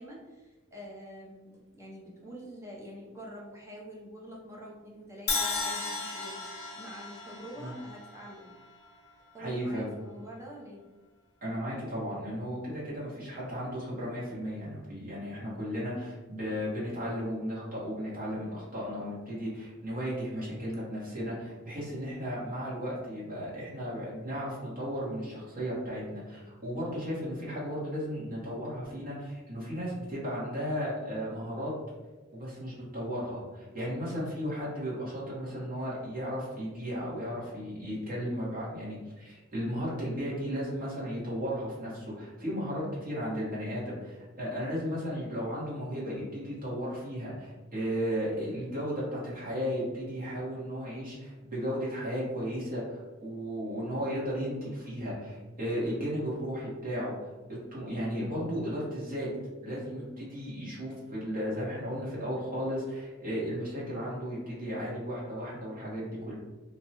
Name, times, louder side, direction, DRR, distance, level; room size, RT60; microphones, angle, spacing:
voice 1, 0.0-6.4 6.7-8.5 9.3-10.8, equal, 15° right, -3 dB, 0.5 m, -46 dB
Crash cymbal, 5.3-9.3, left 4 dB, 55° left, 0.5 m, -35 dB
voice 2, 9.4-9.9 11.4-31.7 32.3-57.1 57.5-59.3 59.6-66.3, equal, 45° right, -7 dB, 1.1 m, -35 dB
2.7 x 2.1 x 2.8 m, 1.2 s
head